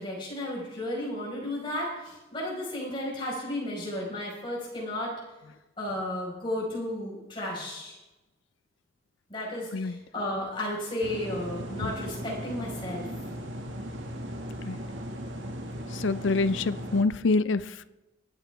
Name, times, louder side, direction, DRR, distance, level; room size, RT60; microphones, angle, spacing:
voice 1, 0.0-5.1 5.8-8.0 9.3-13.1 15.1-15.2, left 1 dB, 25° left, -4 dB, 4.9 m, -33 dB
sound 1, 11.0-17.0, equal, 80° right, 1.8 m, -37 dB
voice 2, 15.9-17.9, left 3 dB, 80° left, 16 dB, 0.5 m, -26 dB
27.0 x 9.1 x 3.5 m, 1.1 s
head